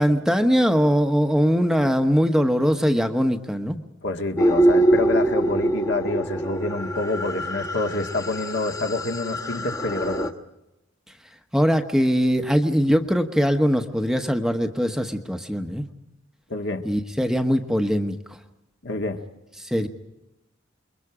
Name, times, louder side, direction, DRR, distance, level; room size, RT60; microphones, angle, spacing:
voice 1, 0.0-3.8 11.5-15.9 16.8-18.2 19.6-19.9, equal, 5° right, 5 dB, 1.1 m, -21 dB
voice 2, 4.0-10.3 16.5-16.8 18.8-19.2, left 2 dB, 60° left, 4 dB, 1.8 m, -27 dB
sound 1, 4.4-10.3, right 1 dB, 20° left, 1.2 m, -24 dB
28.5 x 23.0 x 5.0 m, 0.92 s
head